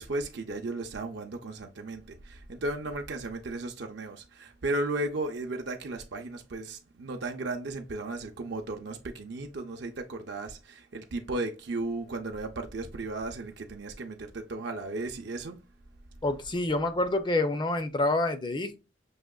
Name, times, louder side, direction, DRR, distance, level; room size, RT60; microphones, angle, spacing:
voice 1, 0.0-15.6, right 2 dB, 65° right, 0.6 m, -35 dB
voice 2, 16.2-18.8, left 2 dB, 25° left, 0.5 m, -27 dB
6.2 x 2.9 x 2.3 m
head